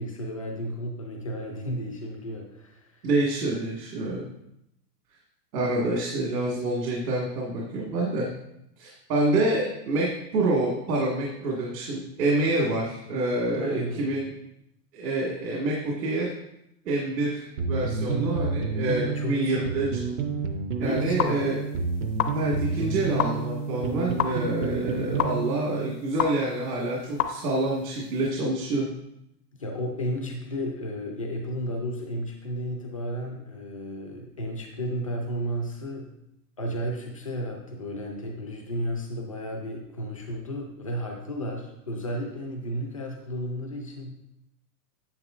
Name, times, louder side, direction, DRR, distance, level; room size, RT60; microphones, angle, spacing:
voice 1, 0.0-3.1 13.5-14.2 17.9-18.4 19.1-19.7 20.8-21.5 29.6-36.1 36.6-44.1, equal, 25° left, 1 dB, 0.4 m, -33 dB
voice 2, 3.0-4.3 5.5-8.3 8.8-14.3 14.9-16.3 16.9-20.0 20.8-21.6 22.3-28.9, right 2 dB, 75° right, -3 dB, 2.0 m, -27 dB
sound 1, 17.6-26.0, right 4 dB, 50° right, 0.6 m, -30 dB
sound 2, 20.8-28.3, left 10 dB, 60° left, 0.8 m, -33 dB
9.6 x 6.9 x 2.5 m, 0.82 s
supercardioid pair, 180°, 48 cm